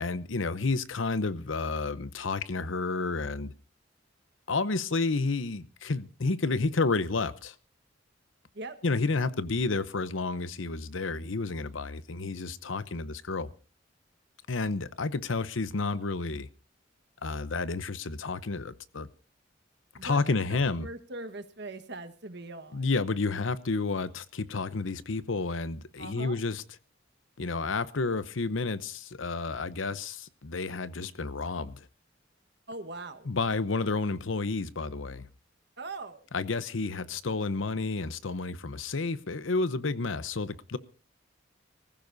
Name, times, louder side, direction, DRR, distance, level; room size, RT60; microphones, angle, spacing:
voice 1, 0.0-3.5 4.5-7.5 8.8-13.5 14.5-16.5 17.2-19.1 20.0-20.9 22.7-26.6 27.4-31.9 33.3-35.3 36.3-40.8, left 3 dB, 85° left, 0.8 m, -30 dB
voice 2, 20.0-20.3 20.8-22.9 26.0-26.4 32.7-33.3 35.8-36.3, right 2 dB, 60° right, 1.4 m, -41 dB
24.0 x 15.5 x 2.7 m
head